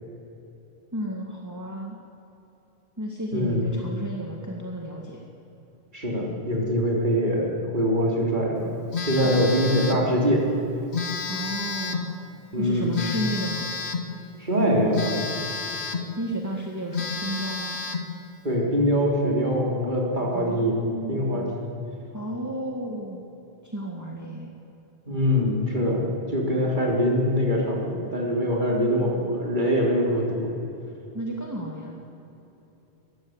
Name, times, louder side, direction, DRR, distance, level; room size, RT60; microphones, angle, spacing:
voice 1, 0.9-2.0 3.0-5.2 9.0-9.7 11.2-12.1 12.6-13.7 16.2-17.8 20.3-21.6 22.1-23.3 23.6-24.5 28.7-29.2 31.1-32.0, right 1 dB, 15° right, -1 dB, 2.0 m, -33 dB
voice 2, 3.3-3.7 5.9-8.7 9.0-10.5 12.5-13.0 14.4-15.3 18.4-20.8 21.1-21.7 25.1-30.5, equal, 45° right, -2 dB, 3.9 m, -23 dB
Telephone, 8.9-10.1 10.9-12.1 12.9-14.1 14.9-16.1 16.6-16.7 16.9-18.1, left 4 dB, 75° left, 1.6 m, -30 dB
21.5 x 15.5 x 8.1 m, 3.0 s
omnidirectional pair, 1.1 m